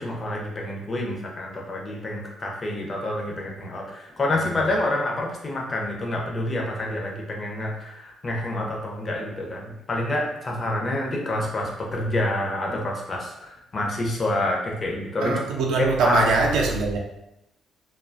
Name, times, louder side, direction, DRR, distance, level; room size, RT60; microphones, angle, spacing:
voice 1, 0.0-15.4 15.8-16.2, left 1 dB, 35° left, -1 dB, 0.6 m, -28 dB
voice 2, 15.2-17.0, right 3 dB, 90° right, 0 dB, 0.3 m, -22 dB
2.4 x 2.2 x 2.5 m, 0.86 s
cardioid pair, 90°, 0 cm